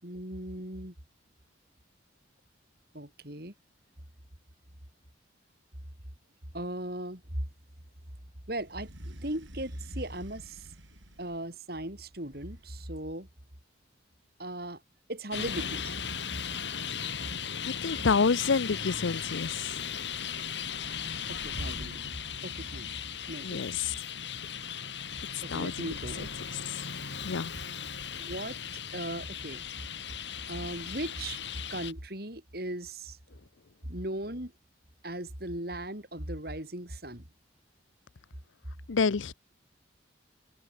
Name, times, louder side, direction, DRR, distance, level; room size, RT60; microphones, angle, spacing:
voice 1, 0.0-0.9 2.9-3.5 6.5-7.2 8.5-10.7 11.2-13.3 14.4-14.8 15.1-16.0 21.3-22.1 22.4-22.9 23.3-23.6 25.4-26.3 28.1-28.6 28.9-29.6 30.5-31.4 31.7-33.2 33.9-34.5 35.0-37.2, right 1 dB, 55° right, 5.1 m, -38 dB
sound 1, 8.5-11.6 12.1-13.0, right 1 dB, 85° right, 5.2 m, -53 dB
Traffic noise roadway noise, 15.3-31.9, left 7 dB, 70° left, 5.5 m, -37 dB
voice 2, 17.6-19.8 23.4-23.9 25.5-25.9 27.2-27.5 38.9-39.3, left 5 dB, 85° left, 0.6 m, -28 dB
head